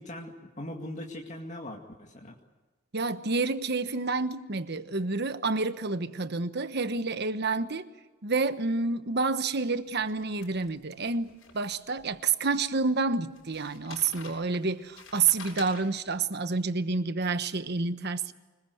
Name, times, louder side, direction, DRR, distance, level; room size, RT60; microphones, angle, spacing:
voice 1, 0.0-2.3, left 1 dB, 35° left, 2.1 m, -40 dB
voice 2, 2.9-7.9 8.2-18.3, right 4 dB, 55° right, 1.2 m, -29 dB
sound 1, 10.0-12.0 12.5-12.6 13.4-16.2, left 5 dB, 85° left, 7.2 m, -48 dB
25.5 x 21.0 x 8.0 m
head